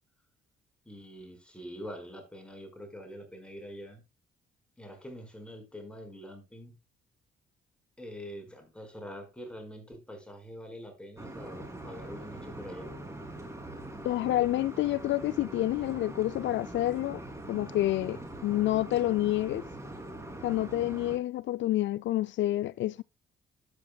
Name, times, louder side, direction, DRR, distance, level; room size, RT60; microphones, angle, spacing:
voice 1, 0.8-4.0 4.8-6.8 8.0-12.9, equal, 5° left, 4.8 m, -45 dB
sound 1, 11.2-21.2, right 1 dB, 15° right, 3.0 m, -43 dB
voice 2, 14.0-17.2 17.5-19.6 20.4-23.0, left 15 dB, 70° left, 0.4 m, -28 dB
13.0 x 8.6 x 2.3 m
cardioid pair, 90°, 20 cm